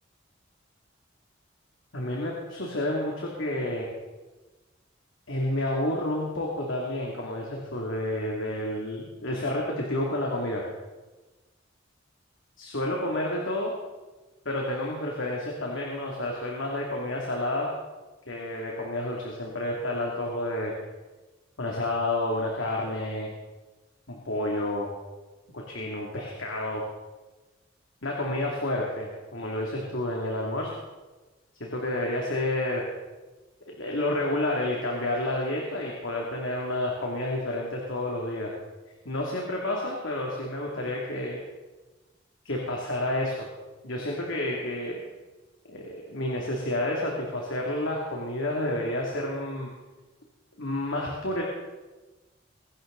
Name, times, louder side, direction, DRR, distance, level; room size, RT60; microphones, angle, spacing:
voice 1, 1.9-3.8 5.3-10.6 12.6-13.7 14.4-17.7 18.3-20.7 21.6-23.3 24.1-24.9 25.5-26.8 28.0-30.7 31.6-32.8 33.8-38.5 39.0-41.4 42.4-43.4 43.8-45.0 45.6-49.7 50.6-51.4, left 1 dB, 80° left, -2 dB, 2.5 m, -30 dB
23.0 x 11.5 x 3.9 m, 1.2 s
head